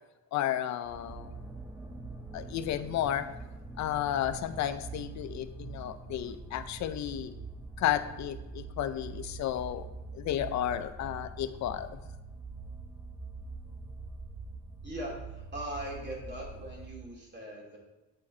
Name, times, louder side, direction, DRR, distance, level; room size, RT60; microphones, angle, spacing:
voice 1, 0.3-1.4 2.3-3.3 3.8-7.3 7.8-9.8 10.1-11.9, left 11 dB, 60° left, 11 dB, 0.6 m, -32 dB
sound 1, 0.8-17.1, right 3 dB, 5° right, 0.6 m, -44 dB
voice 2, 14.8-17.8, equal, 35° right, -2 dB, 2.6 m, -40 dB
8.6 x 4.7 x 4.3 m, 1.1 s
cardioid pair, 125°, 31 cm